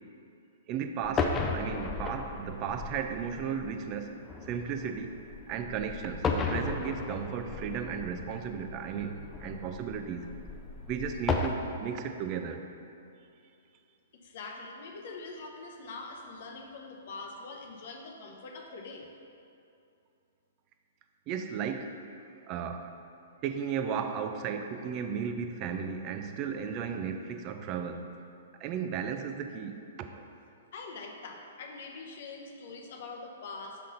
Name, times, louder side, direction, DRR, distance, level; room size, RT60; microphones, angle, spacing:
voice 1, 0.7-5.2 5.5-10.3 10.9-12.7 21.3-22.0 22.5-22.9 23.4-28.1 28.6-30.3, right 7 dB, 35° right, 6 dB, 0.5 m, -35 dB
sound 1, 1.0-11.5, left 4 dB, 20° left, 0.5 m, -35 dB
voice 2, 14.1-19.1 30.7-33.8, left 3 dB, 60° left, 2 dB, 0.7 m, -43 dB
5.6 x 5.1 x 3.8 m, 2.6 s
hypercardioid pair, 125°, 0 cm